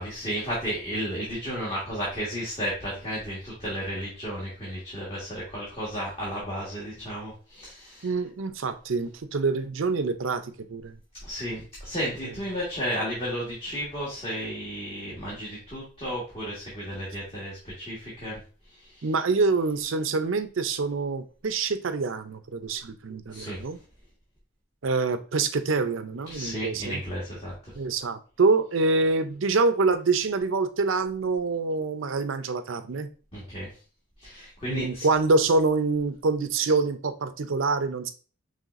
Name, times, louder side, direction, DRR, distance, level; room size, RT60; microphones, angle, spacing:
voice 1, 0.0-8.1 11.2-18.4 18.7-19.1 23.3-23.6 26.3-27.7 33.3-33.8 34.2-35.1, equal, 30° left, 1.6 m, -33 dB
voice 2, 8.0-11.0 19.0-23.8 24.8-27.0 27.7-33.1 34.7-38.1, right 3 dB, 85° right, 0.6 m, -26 dB
5.6 x 3.2 x 2.5 m
head